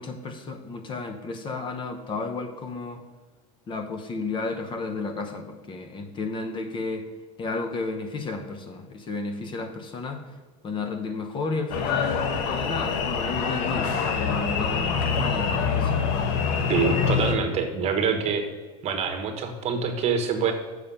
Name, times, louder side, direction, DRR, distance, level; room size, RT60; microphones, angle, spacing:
voice 1, 0.0-3.0 3.7-7.1 7.4-10.2 10.6-15.9, left 3 dB, 30° left, 7 dB, 0.9 m, -32 dB
sound 1, 11.7-17.3, left 6 dB, 70° left, 1.1 m, -25 dB
voice 2, 16.7-18.4 18.8-20.5, right 6 dB, 40° right, 5 dB, 1.3 m, -25 dB
7.1 x 6.5 x 5.6 m, 1.2 s
supercardioid pair, 130°, 17 cm